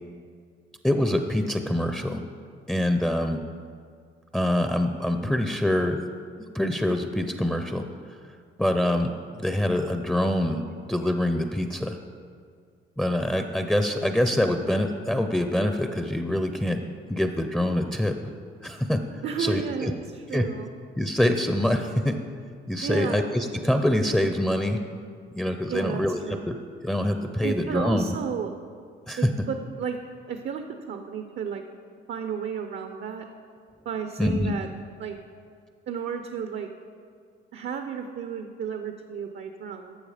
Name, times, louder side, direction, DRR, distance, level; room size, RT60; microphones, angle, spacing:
voice 1, 0.8-2.2 2.7-3.4 4.3-6.0 6.5-7.8 8.6-9.1 9.4-12.0 13.0-18.3 18.6-19.0 19.4-19.9 20.3-20.5 21.0-22.2 22.7-24.8 25.3-26.2 26.5-26.6 26.8-28.1 29.1-29.3 34.2-34.6, left 1 dB, 5° left, 6 dB, 0.6 m, -25 dB
voice 2, 19.2-20.7 22.8-23.3 25.7-26.5 27.4-28.5 29.2-30.0 30.3-31.6 32.1-33.2 33.8-34.7 35.0-35.2 35.9-36.7 37.5-40.0, right 7 dB, 60° right, 6 dB, 0.7 m, -32 dB
12.0 x 6.9 x 5.0 m, 2.1 s
cardioid pair, 90°, 20 cm